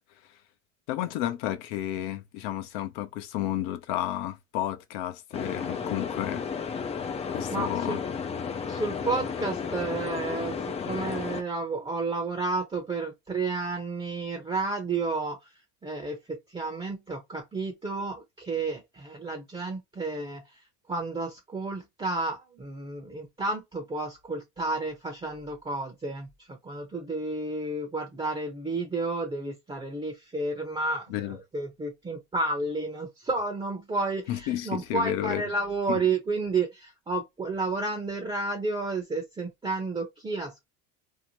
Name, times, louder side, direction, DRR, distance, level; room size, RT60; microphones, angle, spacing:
voice 1, 0.9-6.5 7.3-8.0 31.1-31.4 34.3-35.4 35.9-36.0, left 13 dB, 70° left, 0.7 m, -32 dB
sound 1, 5.3-11.4, left 6 dB, 20° left, 0.3 m, -33 dB
voice 2, 7.5-8.0 8.6-15.5 15.8-20.6 20.9-40.6, right 3 dB, 15° right, 0.7 m, -31 dB
2.8 x 2.1 x 2.9 m
supercardioid pair, 105°, 36 cm